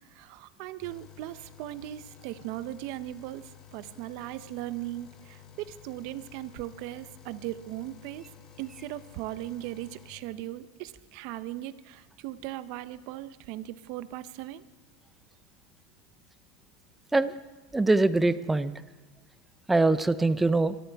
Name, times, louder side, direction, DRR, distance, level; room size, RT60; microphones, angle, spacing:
voice 1, 0.1-8.3 8.6-14.6, right 14 dB, 50° right, 14 dB, 0.6 m, -38 dB
sound 1, 0.8-10.1, left 9 dB, 25° left, 0.9 m, -53 dB
voice 2, 17.7-18.7 19.7-20.7, right 2 dB, 5° right, 14 dB, 0.4 m, -23 dB
23.0 x 13.0 x 3.4 m, 1.3 s
supercardioid pair, 160°, 2 cm